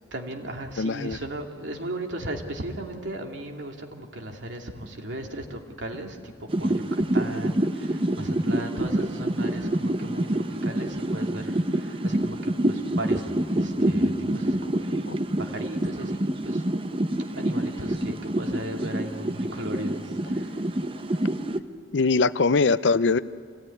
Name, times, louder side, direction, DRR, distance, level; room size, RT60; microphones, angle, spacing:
voice 1, 0.1-13.2 13.5-15.1 15.4-16.7 17.3-20.7, right 1 dB, 80° right, 2 dB, 2.5 m, -36 dB
voice 2, 0.8-1.2 15.1-15.2 21.9-23.2, left 4 dB, 75° left, 16 dB, 0.6 m, -22 dB
sound 1, 6.5-21.6, right 1 dB, 30° right, 0.8 m, -27 dB
25.5 x 17.5 x 9.8 m, 2.1 s
head